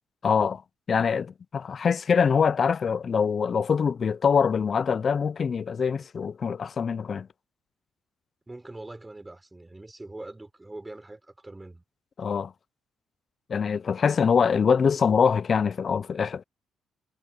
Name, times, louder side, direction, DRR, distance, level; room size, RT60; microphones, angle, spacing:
voice 1, 0.2-0.6 0.9-7.3 12.2-12.5 13.5-16.4, left 6 dB, 45° left, 0.4 m, -24 dB
voice 2, 8.5-11.8, right 2 dB, 15° right, 4.8 m, -43 dB
cardioid pair, 90°, 0 cm